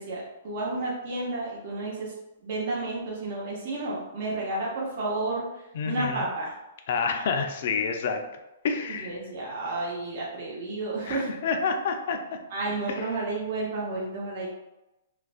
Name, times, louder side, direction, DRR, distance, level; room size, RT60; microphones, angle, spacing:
voice 1, 0.0-2.1 2.4-6.6 8.9-11.3 12.5-14.5, right 2 dB, 50° right, -4 dB, 0.7 m, -31 dB
voice 2, 5.7-6.3 6.9-8.2 8.6-9.1 11.1-12.2 12.9-13.0, left 5 dB, 60° left, 5 dB, 0.3 m, -28 dB
2.4 x 2.1 x 2.4 m, 0.94 s
hypercardioid pair, 150°, 0 cm